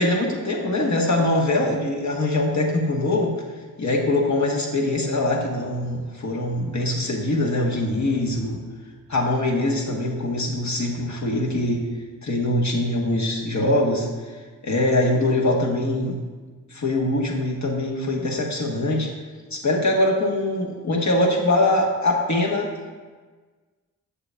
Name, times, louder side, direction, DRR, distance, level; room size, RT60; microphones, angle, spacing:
voice 1, 0.0-3.3 3.8-8.6 9.1-11.9 12.2-14.1 14.6-16.2 16.7-19.1 19.5-22.7, left 1 dB, 55° left, -1 dB, 1.1 m, -23 dB
6.8 x 6.7 x 2.2 m, 1.4 s
cardioid pair, 55°, 34 cm